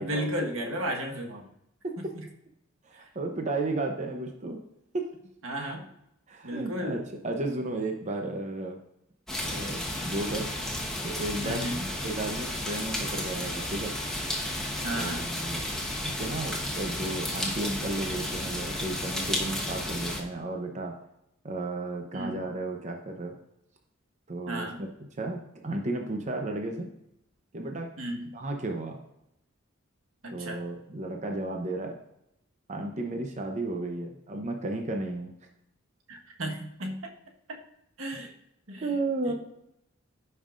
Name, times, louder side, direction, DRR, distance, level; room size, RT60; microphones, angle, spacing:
voice 1, 0.0-1.5 2.0-2.3 5.4-5.9 6.4-7.1 11.4-11.9 14.8-15.3 22.1-22.4 24.5-24.8 28.0-28.3 30.2-30.6 36.1-37.1 37.5-37.6 38.0-38.3 38.7-38.9 39.2-39.3, equal, 80° right, 2 dB, 1.4 m, -34 dB
voice 2, 2.8-4.6 4.9-5.0 6.3-8.8 9.4-10.5 11.0-11.7 12.0-13.9 14.9-15.6 16.0-20.9 21.4-23.3 24.3-24.9 25.2-26.9 27.5-27.9 28.3-29.0 30.3-31.9 32.7-35.3 38.8-39.3, right 2 dB, 35° right, 3 dB, 0.7 m, -33 dB
sound 1, 9.3-20.2, left 1 dB, 5° left, 1.2 m, -33 dB
14.5 x 5.5 x 2.5 m, 0.81 s
head